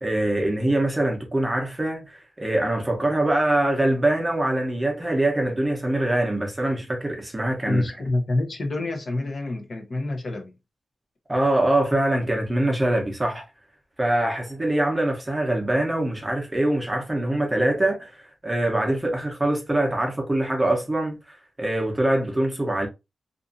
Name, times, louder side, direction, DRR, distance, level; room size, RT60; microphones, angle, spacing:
voice 1, 0.0-7.8 11.3-13.4 14.0-22.9, right 1 dB, 15° right, 0.8 m, -24 dB
voice 2, 7.7-10.5, left 2 dB, 45° left, 0.7 m, -27 dB
2.6 x 2.5 x 2.6 m
wide cardioid pair, 125°, 0 cm